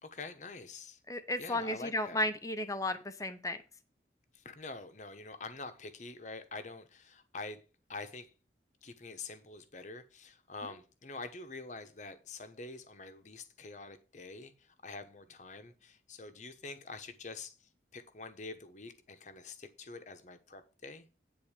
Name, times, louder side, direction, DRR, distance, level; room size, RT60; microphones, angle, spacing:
voice 1, 0.0-1.0 1.4-2.2 4.3-7.6 7.9-8.3 8.8-21.1, left 3 dB, 40° left, 1.1 m, -46 dB
voice 2, 1.1-3.6, left 1 dB, 20° left, 0.8 m, -34 dB
10.0 x 4.0 x 7.3 m
head